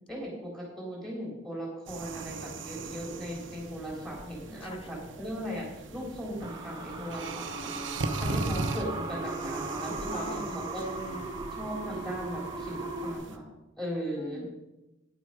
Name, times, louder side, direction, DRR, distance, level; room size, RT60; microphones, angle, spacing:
voice 1, 0.1-5.7 5.9-10.9 11.5-13.5 13.8-14.4, equal, ahead, -4 dB, 3.7 m, -38 dB
sound 1, 1.9-13.4, right 2 dB, 65° right, 0.9 m, -39 dB
sound 2, 6.4-13.1, right 3 dB, 20° right, 1.3 m, -37 dB
voice 2, 9.9-10.7 10.9-11.5 14.2-14.5, left 2 dB, 25° left, 10 dB, 0.6 m, -42 dB
10.0 x 8.0 x 5.0 m, 1.0 s
head